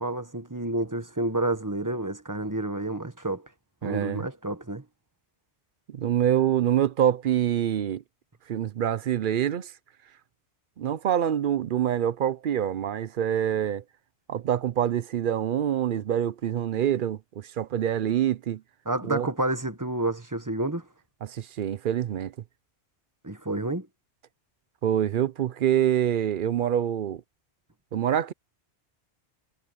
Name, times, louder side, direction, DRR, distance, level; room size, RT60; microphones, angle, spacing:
voice 1, 0.0-3.5 3.8-4.8 18.8-20.8 23.2-23.9, right 2 dB, 15° right, 1.2 m, -29 dB
voice 2, 3.8-4.2 5.9-8.0 8.5-9.7 10.8-13.8 14.3-18.6 19.0-19.3 21.2-22.3 24.8-27.2 27.9-28.3, right 10 dB, 55° right, 0.6 m, -26 dB
omnidirectional pair, 1.2 m